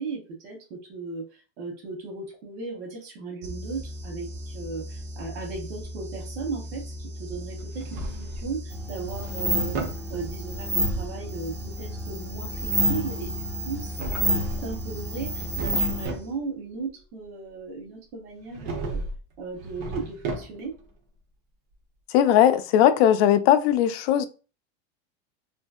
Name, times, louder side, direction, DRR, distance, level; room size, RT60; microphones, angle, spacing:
voice 1, 0.0-19.0 19.4-20.7, right 4 dB, 85° right, 1.1 m, -36 dB
sound 1, 3.4-16.5, equal, 35° right, 0.9 m, -38 dB
Drawer open or close, 7.6-8.6 9.0-10.0 13.7-14.8 15.2-16.3 18.5-19.2 19.5-20.8, right 2 dB, 55° right, 1.0 m, -34 dB
sound 2, 8.7-16.1, right 1 dB, 5° left, 1.0 m, -29 dB
voice 2, 22.1-24.3, left 10 dB, 75° left, 0.5 m, -19 dB
3.2 x 2.6 x 2.4 m
supercardioid pair, 145°, 32 cm